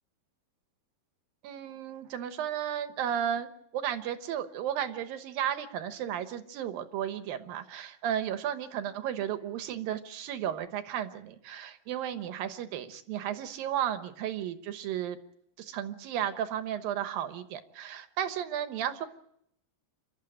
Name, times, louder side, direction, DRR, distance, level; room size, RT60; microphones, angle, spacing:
voice 1, 1.4-15.2 15.6-19.1, right 10 dB, 70° right, 9 dB, 2.7 m, -34 dB
28.0 x 13.0 x 8.8 m, 0.74 s
omnidirectional pair, 4.5 m